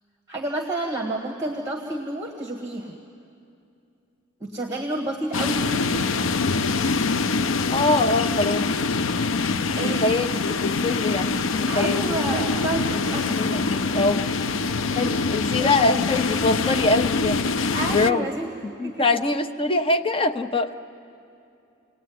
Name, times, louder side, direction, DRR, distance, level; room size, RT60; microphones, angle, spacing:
voice 1, 0.3-3.0 4.4-6.4 9.8-10.0 11.7-13.7 14.9-15.0 15.6-15.7 17.7-18.5 18.8-19.0, right 1 dB, 15° right, 2 dB, 1.7 m, -30 dB
sound 1, 5.3-18.1, left 4 dB, 65° left, 0.5 m, -24 dB
voice 2, 7.7-8.7 9.8-12.0 12.9-14.3 14.9-17.4 17.9-18.3 18.8-20.7, left 2 dB, 25° left, 6 dB, 0.9 m, -24 dB
27.5 x 18.5 x 9.6 m, 2.6 s
head